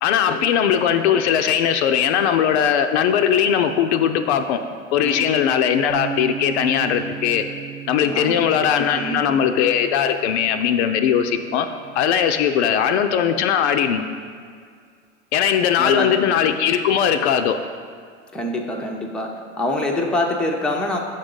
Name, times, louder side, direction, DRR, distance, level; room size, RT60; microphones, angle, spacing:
voice 1, 0.0-4.6 4.9-7.5 7.9-11.7 12.0-14.0 15.3-17.6, left 8 dB, 60° left, 7 dB, 0.5 m, -19 dB
voice 2, 5.0-5.4 8.0-8.4 8.8-9.4 15.8-16.2 18.3-19.3 19.6-21.0, left 1 dB, ahead, 0 dB, 0.6 m, -25 dB
Bass guitar, 5.9-12.1, right 8 dB, 60° right, 0.8 m, -36 dB
6.6 x 3.7 x 5.3 m, 2.1 s
hypercardioid pair, 95°, 37 cm